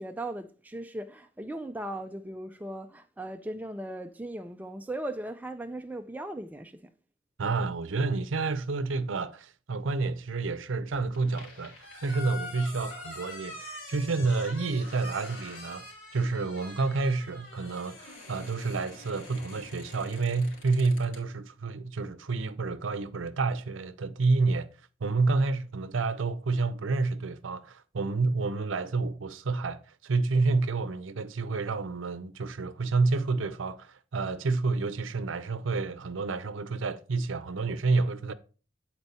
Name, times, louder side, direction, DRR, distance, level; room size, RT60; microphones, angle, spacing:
voice 1, 0.0-6.9, right 1 dB, 10° right, 0.3 m, -38 dB
voice 2, 7.4-24.7 25.0-38.3, right 3 dB, 85° right, 0.6 m, -29 dB
sound 1, 10.9-21.2, left 2 dB, 80° left, 2.8 m, -45 dB
8.2 x 4.4 x 4.1 m
head